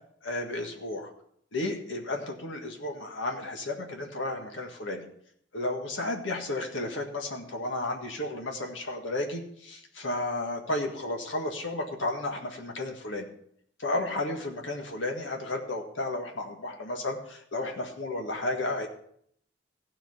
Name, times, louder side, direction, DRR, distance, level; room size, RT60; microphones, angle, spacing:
voice 1, 0.2-1.1 1.5-5.0 5.5-13.3 13.8-18.9, left 2 dB, 85° left, 2 dB, 1.7 m, -33 dB
15.5 x 5.8 x 5.6 m, 0.67 s
head